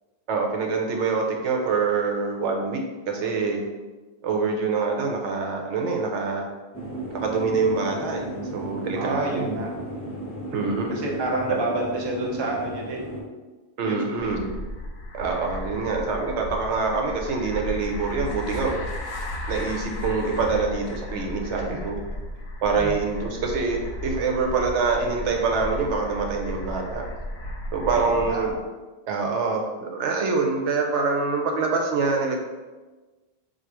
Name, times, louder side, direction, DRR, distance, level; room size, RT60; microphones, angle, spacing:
voice 1, 0.3-3.6 4.2-6.5 7.1-9.6 10.5-11.0 13.8-14.5 15.2-18.8 19.5-22.0 22.6-27.0 27.7-28.5 29.1-32.4, right 4 dB, 80° right, 2 dB, 0.9 m, -25 dB
sound 1, 6.7-13.2, right 1 dB, 15° left, 0.7 m, -34 dB
voice 2, 8.9-9.7 10.5-13.1 13.8-14.3 21.7-21.8 22.8-23.0 27.9-28.6, right 2 dB, 30° right, -2 dB, 0.6 m, -29 dB
sound 2, 14.2-28.6, left 1 dB, 60° left, 0.9 m, -34 dB
3.8 x 2.4 x 4.6 m, 1.3 s
omnidirectional pair, 1.2 m